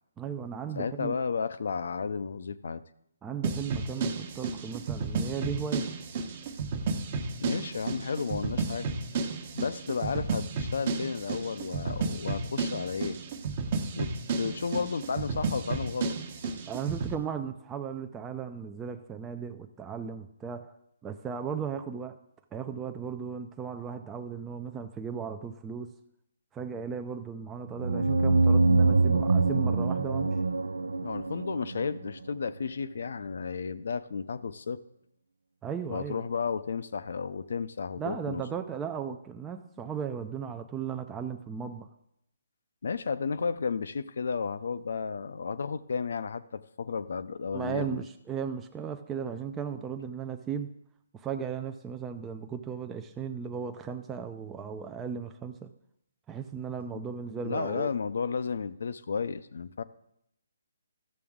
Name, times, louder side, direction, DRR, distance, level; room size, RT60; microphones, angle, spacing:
voice 1, 0.2-1.1 3.2-5.9 16.7-20.7 21.0-22.2 22.5-25.9 26.5-30.4 35.6-36.2 38.0-41.9 47.5-50.7 51.1-55.7 56.3-57.9, right 7 dB, 15° right, 6 dB, 0.4 m, -36 dB
voice 2, 0.7-2.8 7.4-8.9 9.5-13.2 13.9-16.2 31.0-34.8 35.9-38.4 42.8-48.0 57.4-59.8, left 5 dB, 65° left, 14 dB, 0.5 m, -33 dB
sound 1, 3.4-17.1, right 4 dB, 40° right, 1.0 m, -32 dB
sound 2, 27.8-32.3, right 3 dB, 90° right, 0.4 m, -25 dB
13.0 x 6.8 x 3.6 m, 0.77 s
hypercardioid pair, 150°, 0 cm